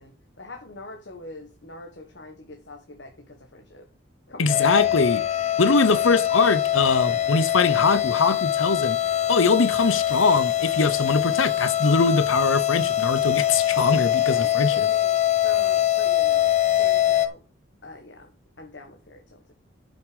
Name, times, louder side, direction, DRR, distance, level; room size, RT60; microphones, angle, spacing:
voice 1, 0.0-3.9 4.3-4.6 14.3-17.4 17.8-18.3 18.6-19.5, left 2 dB, 55° left, 1.5 m, -43 dB
voice 2, 4.4-5.2 5.6-9.0 9.3-14.9, left 4 dB, 80° left, 0.9 m, -22 dB
sound 1, 4.5-17.3, left 12 dB, 35° left, 1.0 m, -23 dB
8.3 x 6.7 x 5.2 m
head